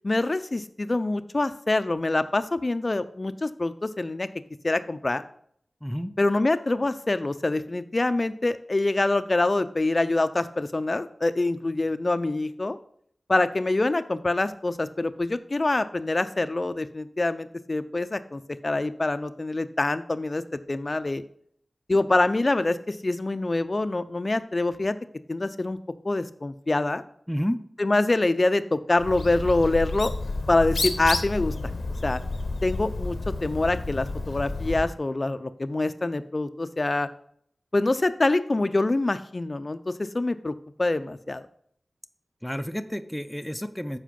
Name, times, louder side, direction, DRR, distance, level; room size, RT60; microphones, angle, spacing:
voice 1, 0.0-4.3 4.6-5.2 6.2-12.8 13.3-21.2 21.9-25.0 25.3-25.8 26.0-27.0 27.8-30.1 30.5-31.5 32.0-32.2 32.6-37.1 37.7-40.5 40.8-41.5, left 2 dB, 45° left, 12 dB, 0.6 m, -25 dB
voice 2, 5.8-6.1 27.3-27.6 42.4-44.0, equal, 5° left, 10 dB, 0.7 m, -30 dB
Bird, 29.0-34.9, left 3 dB, 75° left, 0.8 m, -30 dB
7.5 x 4.9 x 5.3 m, 0.66 s
cardioid pair, 40°, 0 cm